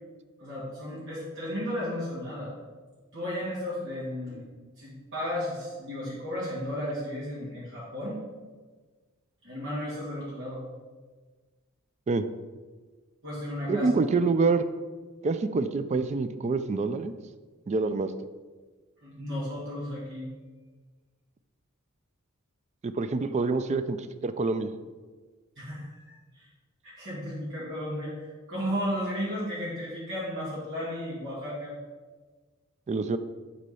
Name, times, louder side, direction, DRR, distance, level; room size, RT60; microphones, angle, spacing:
voice 1, 0.4-2.5 3.1-4.5 4.8-8.2 9.4-10.6 13.2-14.0 19.0-20.3 25.6-26.5 26.8-31.7, equal, 60° right, -9 dB, 2.5 m, -34 dB
voice 2, 13.7-14.7 15.2-17.1 17.7-18.1 22.8-24.7 32.9-33.2, right 3 dB, 35° right, 11 dB, 0.3 m, -26 dB
8.2 x 4.2 x 5.5 m, 1.4 s
head